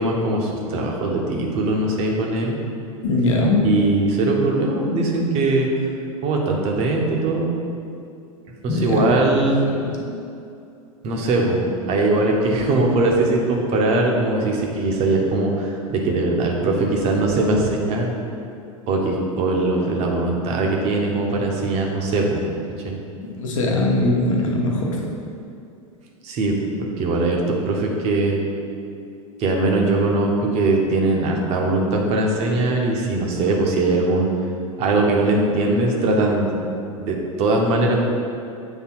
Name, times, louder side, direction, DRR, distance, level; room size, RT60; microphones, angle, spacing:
voice 1, 0.0-2.6 3.6-5.7 6.2-7.6 8.6-9.6 11.0-18.1 18.9-22.4 22.8-23.0 26.2-26.6 27.0-28.4 29.4-34.3 34.8-36.5 37.0-38.0, right 2 dB, 35° right, 0 dB, 1.0 m, -21 dB
voice 2, 3.0-3.8 8.7-9.1 9.8-10.0 23.2-25.1, left 2 dB, 60° left, -1 dB, 1.1 m, -21 dB
8.0 x 3.3 x 4.5 m, 2.6 s
figure-of-eight pair, 90°, 18 cm